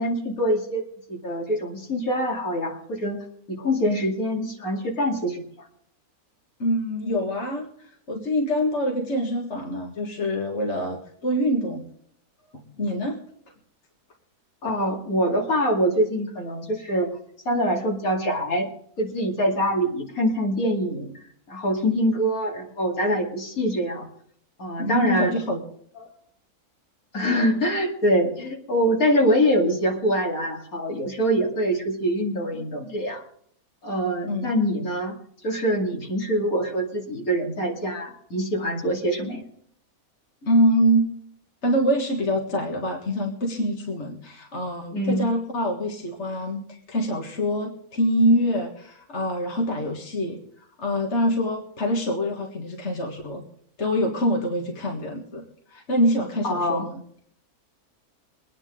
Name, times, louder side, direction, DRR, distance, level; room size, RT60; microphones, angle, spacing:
voice 1, 0.0-3.2 3.5-5.4 14.6-17.1 17.4-18.7 19.0-21.1 21.5-24.1 24.6-25.3 26.0-26.2 27.1-33.2 33.8-35.1 35.4-39.4 44.9-45.3 56.4-56.9, equal, 70° left, 0 dB, 3.0 m, -24 dB
voice 2, 6.6-11.8 12.5-13.2 24.8-25.6 34.3-34.5 40.4-41.1 41.6-50.4 50.8-53.4 53.8-55.4 55.7-57.0, equal, 50° left, 1 dB, 2.0 m, -25 dB
23.5 x 9.8 x 3.7 m, 0.65 s
omnidirectional pair, 1.6 m